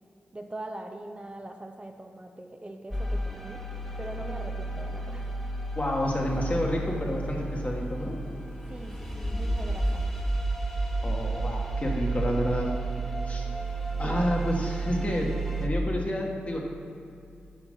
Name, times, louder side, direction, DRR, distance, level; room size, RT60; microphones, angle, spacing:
voice 1, 0.3-3.6 4.0-5.3 8.7-10.1 14.0-14.3, right 1 dB, 25° right, 4 dB, 0.6 m, -41 dB
sound 1, 2.9-15.7, right 2 dB, 5° left, 1.1 m, -31 dB
voice 2, 5.8-8.2 11.0-12.7 13.3-13.4 14.0-15.3 15.6-16.6, left 1 dB, 35° left, -1 dB, 1.7 m, -29 dB
sound 2, 6.0-11.1 15.1-15.2, left 2 dB, 70° left, 1.4 m, -48 dB
7.3 x 5.2 x 5.4 m, 2.5 s
supercardioid pair, 40°, 4 cm